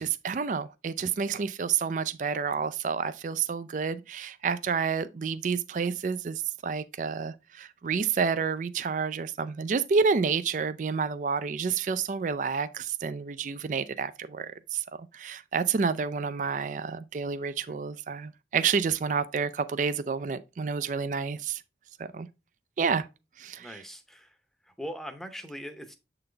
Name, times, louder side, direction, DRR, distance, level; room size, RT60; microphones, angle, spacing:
voice 1, 0.0-14.8 15.1-21.6 22.1-22.3 22.8-23.1 23.4-23.7, right 5 dB, 45° right, 0.3 m, -29 dB
voice 2, 23.6-24.4 24.6-25.9, equal, ahead, 0.7 m, -41 dB
7.7 x 3.9 x 3.3 m
head